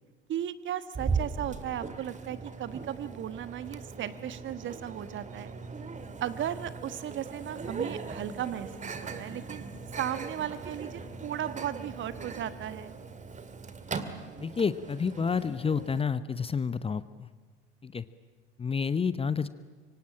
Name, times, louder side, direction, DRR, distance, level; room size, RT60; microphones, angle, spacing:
voice 1, 0.3-5.6 6.2-9.6 10.0-12.9, right 10 dB, 40° right, 14 dB, 1.4 m, -36 dB
Microwave oven, 1.0-16.0, right 4 dB, 25° right, 2.1 m, -39 dB
voice 2, 14.4-17.3 17.8-18.0 18.6-19.5, left 5 dB, 20° left, 15 dB, 0.9 m, -29 dB
26.0 x 23.5 x 8.9 m, 1.5 s
figure-of-eight pair, 65°, 30 cm